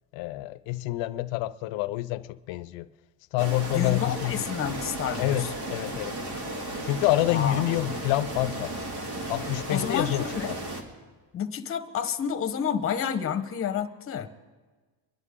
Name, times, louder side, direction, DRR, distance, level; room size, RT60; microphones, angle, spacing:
voice 1, 0.1-2.9 3.3-4.5 5.2-6.2 6.8-8.8 9.3-10.6, left 16 dB, 70° left, 0.7 m, -27 dB
sound 1, 3.4-10.8, right 1 dB, 55° right, 2.4 m, -34 dB
voice 2, 3.7-5.5 7.3-7.6 9.7-10.5 11.3-14.3, left 8 dB, 30° left, 1.0 m, -29 dB
24.5 x 11.0 x 3.7 m
cardioid pair, 125°, 45 cm